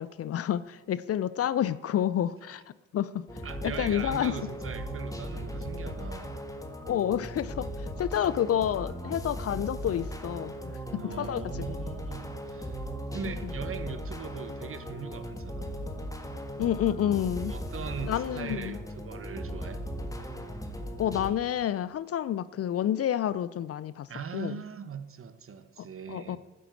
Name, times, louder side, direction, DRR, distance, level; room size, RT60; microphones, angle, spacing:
voice 1, 0.0-2.6 2.9-3.2 3.6-4.4 6.9-11.4 11.7-11.8 16.6-17.5 18.0-18.8 21.0-24.1 24.3-24.6 26.1-26.4, left 10 dB, 45° left, 0.5 m, -29 dB
sound 1, 3.3-21.3, equal, 10° left, 1.6 m, -37 dB
voice 2, 3.4-6.3 10.9-12.8 13.1-15.7 17.5-19.9 24.1-26.4, right 6 dB, 40° right, 1.2 m, -40 dB
9.9 x 7.8 x 7.8 m
hypercardioid pair, 45°, 34 cm